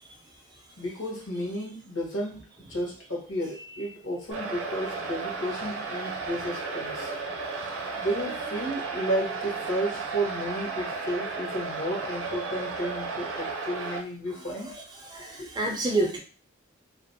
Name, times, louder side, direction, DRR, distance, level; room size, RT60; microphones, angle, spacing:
voice 1, 0.8-7.1 7.9-14.7 15.4-15.5, equal, 65° left, -2 dB, 1.0 m, -32 dB
sound 1, 4.3-14.0, right 4 dB, 75° right, 0.5 m, -34 dB
voice 2, 14.6-16.2, right 2 dB, 20° right, 1 dB, 0.4 m, -30 dB
2.4 x 2.0 x 2.6 m, 0.39 s
head